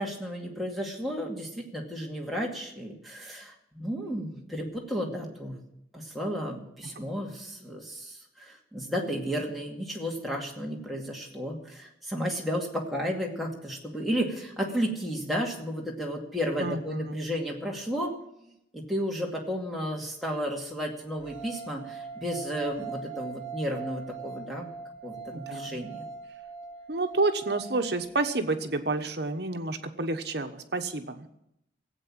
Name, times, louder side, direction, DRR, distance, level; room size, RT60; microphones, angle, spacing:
voice 1, 0.0-5.6 5.9-18.1 18.4-24.7 25.0-26.0, equal, ahead, -2 dB, 2.3 m, -33 dB
voice 2, 16.6-17.2 25.3-25.8 26.9-31.3, right 3 dB, 60° right, 7 dB, 1.2 m, -30 dB
sound 1, 21.2-28.3, right 5 dB, 35° right, 3.1 m, -41 dB
16.5 x 8.3 x 8.7 m, 0.81 s
head